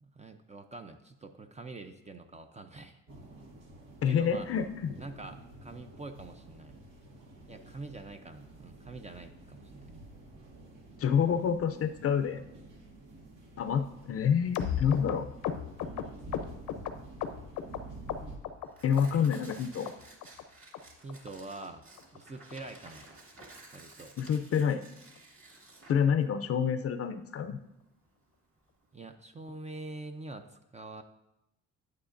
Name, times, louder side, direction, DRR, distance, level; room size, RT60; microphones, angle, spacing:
voice 1, 0.0-3.0 4.1-4.5 5.0-6.7 7.5-9.9 21.0-21.8 22.1-23.1 23.7-24.2 28.9-31.0, right 2 dB, 25° right, 6 dB, 0.6 m, -45 dB
sound 1, 3.1-18.4, right 2 dB, 85° right, 1.8 m, -49 dB
voice 2, 4.0-4.9 11.0-12.4 13.6-15.3 18.8-19.9 24.2-24.8 25.9-27.6, left 7 dB, 50° left, 9 dB, 0.5 m, -28 dB
sound 2, 14.5-17.8 18.1-18.7 19.0-19.6 19.9-20.0 20.2-20.4 20.7-20.8 21.1-21.3 21.6-21.7 22.0-22.2 22.5-22.6 22.9-23.1 23.4-23.5 23.7-23.9 24.3-24.4, left 9 dB, 80° left, 0.7 m, -35 dB
Tearing, 14.8-29.1, right 2 dB, 45° right, 2.1 m, -55 dB
9.6 x 9.2 x 2.6 m, 0.86 s
cardioid pair, 90°, 30 cm